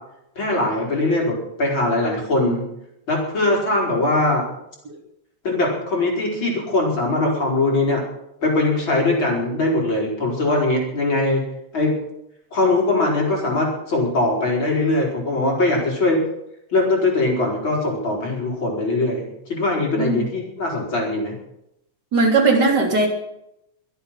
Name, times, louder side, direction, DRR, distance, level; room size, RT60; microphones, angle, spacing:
voice 1, 0.4-2.6 3.1-4.5 5.4-8.0 8.4-11.4 11.7-11.9 12.5-16.2 16.7-21.3, left 2 dB, 35° left, -1 dB, 4.9 m, -21 dB
voice 2, 22.1-23.1, right 3 dB, 35° right, 1 dB, 3.4 m, -18 dB
24.5 x 8.3 x 5.9 m, 0.80 s
omnidirectional pair, 3.6 m